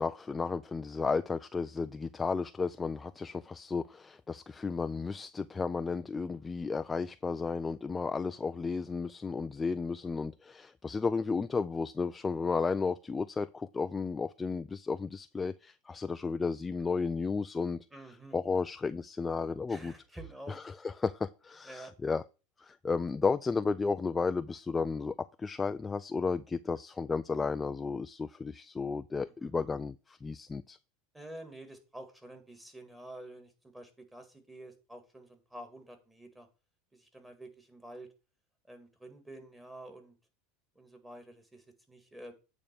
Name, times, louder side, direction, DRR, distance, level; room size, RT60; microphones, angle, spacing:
voice 1, 0.0-17.9 18.3-19.9 20.5-22.2 22.6-30.8, left 4 dB, 15° left, 0.3 m, -33 dB
voice 2, 17.9-18.4 19.7-20.6 21.6-21.9 29.4-29.5 31.1-36.5 36.9-38.1 38.7-40.2 40.8-42.3, right 1 dB, 10° right, 2.0 m, -49 dB
8.8 x 3.6 x 6.8 m
supercardioid pair, 125°, 0 cm